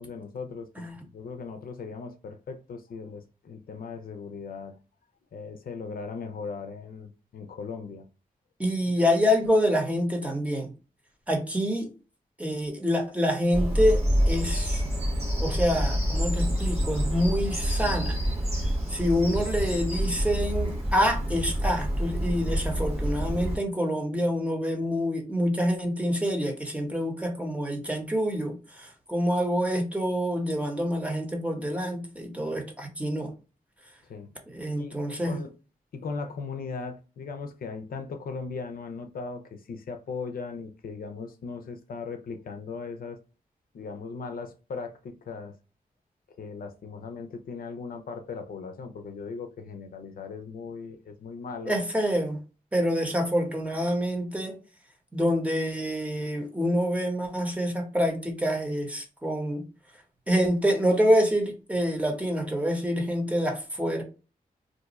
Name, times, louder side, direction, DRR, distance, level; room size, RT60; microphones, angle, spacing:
voice 1, 0.0-4.8 5.3-8.1 34.1-34.3 34.8-35.0 35.2-35.5 35.9-43.2 43.7-45.6 46.4-51.8, left 4 dB, 70° left, 0.5 m, -38 dB
voice 2, 8.6-10.7 11.3-11.9 12.4-14.8 15.4-18.2 18.9-33.3 34.5-35.4 51.6-52.4 52.7-54.6 55.1-59.6 60.3-64.0, equal, 10° right, 0.9 m, -26 dB
Bird vocalization bird call bird song, 13.5-23.6, equal, 40° right, 1.3 m, -27 dB
2.6 x 2.3 x 4.0 m
wide cardioid pair, 95°, 15 cm